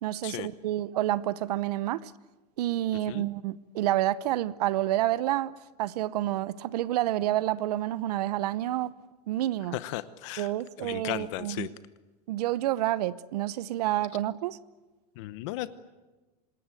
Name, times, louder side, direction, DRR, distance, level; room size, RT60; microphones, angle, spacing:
voice 1, 0.0-2.1 2.6-8.9 9.3-9.8 10.4-11.7 12.3-14.6, right 14 dB, 75° right, 0.9 m, -29 dB
voice 2, 9.7-10.5 10.8-11.7 15.2-15.7, left 16 dB, 50° left, 0.9 m, -35 dB
26.5 x 21.5 x 9.0 m
supercardioid pair, 180°, 20 cm